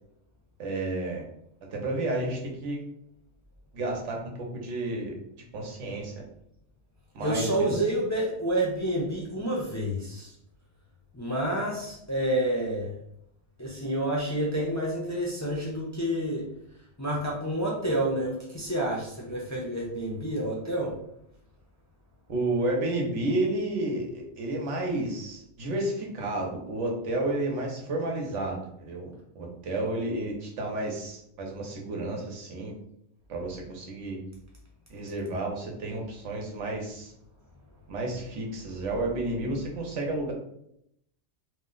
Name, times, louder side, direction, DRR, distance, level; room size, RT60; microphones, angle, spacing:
voice 1, 0.6-1.2 1.7-2.8 3.7-5.1 5.5-6.1 7.1-7.8 22.3-32.7 33.3-34.2 34.9-37.1 37.9-40.3, right 2 dB, 90° right, 0 dB, 1.1 m, -31 dB
voice 2, 7.2-10.3 11.1-12.9 13.6-16.4 17.0-20.9, right 1 dB, 20° left, -4 dB, 0.5 m, -29 dB
2.8 x 2.2 x 3.7 m, 0.75 s
omnidirectional pair, 1.2 m